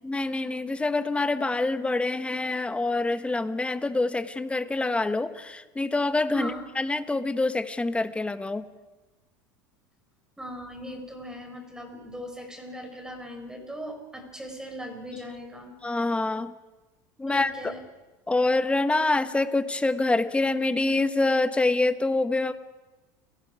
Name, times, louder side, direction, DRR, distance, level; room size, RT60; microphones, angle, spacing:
voice 1, 0.0-8.6 15.8-16.5 17.2-17.7 18.3-22.5, left 2 dB, 10° left, 10 dB, 1.3 m, -26 dB
voice 2, 10.4-15.8 17.3-17.8, equal, 5° right, 4 dB, 5.4 m, -39 dB
30.0 x 18.0 x 5.0 m, 1.1 s
supercardioid pair, 100°, 10 cm